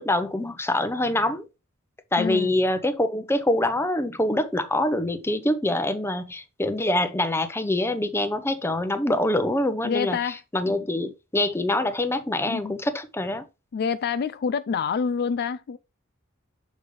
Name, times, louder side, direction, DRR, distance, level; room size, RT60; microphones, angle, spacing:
voice 1, 0.0-1.5 2.1-13.4, left 1 dB, 10° left, 0.7 m, -25 dB
voice 2, 2.2-2.5 9.8-10.4 10.6-10.7 12.5-12.8 13.7-15.8, left 6 dB, 50° left, 0.3 m, -27 dB
6.8 x 5.2 x 3.2 m
head